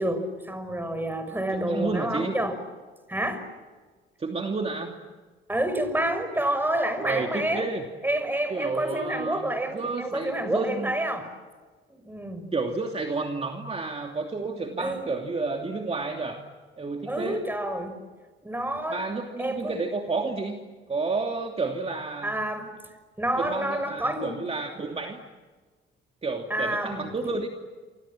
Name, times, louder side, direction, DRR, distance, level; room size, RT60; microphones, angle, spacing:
voice 1, 0.0-2.5 3.1-3.4 5.5-7.7 8.0-11.3 11.9-12.5 14.8-15.1 17.1-17.9 18.4-19.0 19.4-19.8 22.2-22.7 23.2-24.4 26.5-27.1, right 1 dB, 10° right, 9 dB, 6.2 m, -28 dB
voice 2, 1.3-2.3 4.2-5.0 7.0-7.8 8.5-10.9 12.5-16.5 16.8-17.5 18.9-20.6 20.9-22.3 23.4-25.2 26.2-27.5, right 3 dB, 30° right, 3 dB, 2.8 m, -31 dB
28.5 x 26.5 x 7.6 m, 1.4 s
cardioid pair, 90°, 20 cm